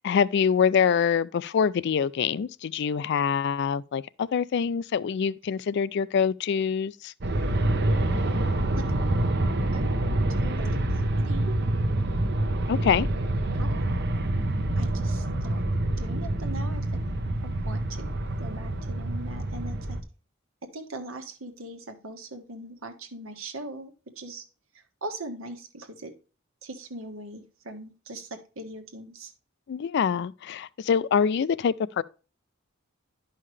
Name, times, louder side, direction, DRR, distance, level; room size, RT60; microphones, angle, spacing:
voice 1, 0.0-7.1 12.7-13.1 29.7-32.0, left 7 dB, 55° left, 0.4 m, -25 dB
Aircraft, 7.2-20.0, right 1 dB, 55° right, 0.9 m, -26 dB
voice 2, 9.7-10.0 10.3-10.8 11.2-11.6 13.5-13.9 14.8-15.6 16.0-17.0 17.4-18.1 18.4-20.0 20.7-24.4 24.7-26.1 26.6-29.3, right 2 dB, 85° right, 1.5 m, -40 dB
11.0 x 5.6 x 3.2 m
head